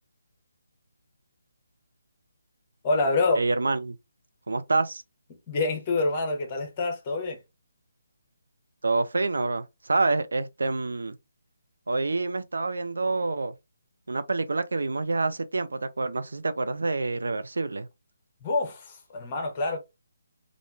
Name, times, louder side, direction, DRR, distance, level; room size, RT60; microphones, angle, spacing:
voice 1, 2.8-3.4 5.5-7.4 18.4-19.8, left 3 dB, 25° left, 0.9 m, -26 dB
voice 2, 3.4-4.0 4.5-5.0 8.8-11.2 11.9-13.5 14.1-17.9, right 3 dB, 65° right, 0.3 m, -27 dB
3.3 x 2.4 x 2.3 m
figure-of-eight pair, 145°, 0 cm